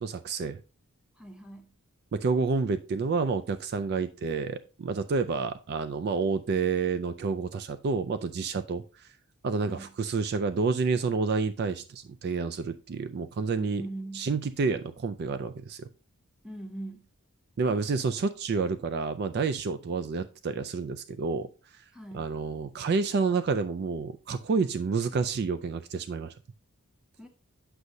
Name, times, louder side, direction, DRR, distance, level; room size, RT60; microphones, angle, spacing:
voice 1, 0.0-0.6 2.1-9.1 9.4-13.8 14.1-15.9 17.6-21.5 21.7-21.8 22.1-26.3, right 4 dB, 45° right, 0.3 m, -29 dB
voice 2, 1.1-1.7 9.6-9.9 13.6-14.3 16.4-17.1 21.9-22.3 27.2-27.3, right 1 dB, 5° right, 0.9 m, -41 dB
7.9 x 6.3 x 2.7 m
head